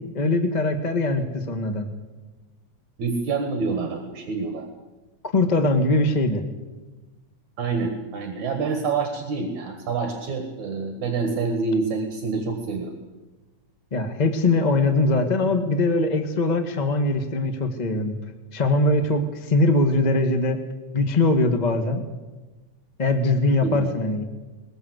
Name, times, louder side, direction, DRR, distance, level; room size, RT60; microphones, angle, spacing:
voice 1, 0.0-1.9 5.3-6.4 13.9-18.1 18.5-20.6 20.9-22.0 23.0-24.2, left 2 dB, 25° left, 6 dB, 1.0 m, -21 dB
voice 2, 3.0-4.7 7.6-13.0 23.6-23.9, right 4 dB, 70° right, 5 dB, 3.2 m, -27 dB
21.5 x 21.5 x 8.1 m, 1.2 s
omnidirectional pair, 3.6 m